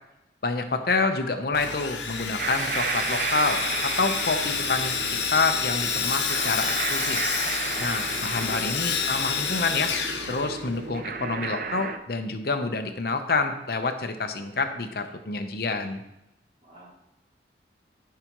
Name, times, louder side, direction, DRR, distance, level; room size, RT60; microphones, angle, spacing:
voice 1, 0.4-5.0 5.3-7.2 7.8-9.9 10.3-16.0, left 3 dB, 55° left, 7 dB, 0.8 m, -27 dB
Sawing, 1.5-11.0, left 6 dB, 80° left, 1.1 m, -29 dB
sound 1, 2.4-12.0, right 5 dB, 50° right, 0.5 m, -33 dB
voice 2, 7.7-8.8 16.6-16.9, right 1 dB, 35° right, -7 dB, 3.2 m, -43 dB
13.5 x 5.7 x 3.0 m, 0.89 s
head